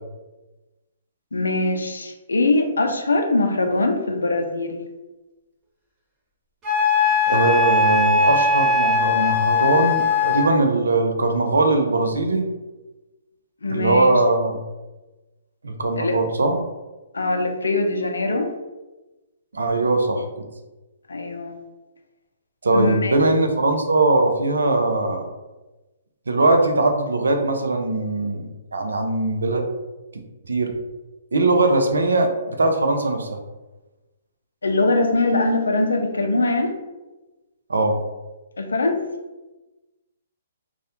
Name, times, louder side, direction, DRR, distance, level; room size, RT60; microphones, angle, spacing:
voice 1, 1.3-4.8 13.6-14.2 16.0-16.1 17.1-18.5 21.1-21.6 22.7-23.2 34.6-36.8 38.6-39.0, left 2 dB, 80° left, 5 dB, 0.4 m, -22 dB
Wind instrument woodwind instrument, 6.6-10.5, left 3 dB, 25° right, 1.0 m, -19 dB
voice 2, 7.3-12.5 13.7-14.6 15.6-16.6 19.5-20.3 22.6-25.3 26.3-29.6 30.5-30.7 31.3-33.4 37.7-38.0, right 2 dB, 80° right, 5 dB, 0.4 m, -20 dB
2.3 x 2.1 x 2.7 m, 1.1 s
hypercardioid pair, 130°, 0 cm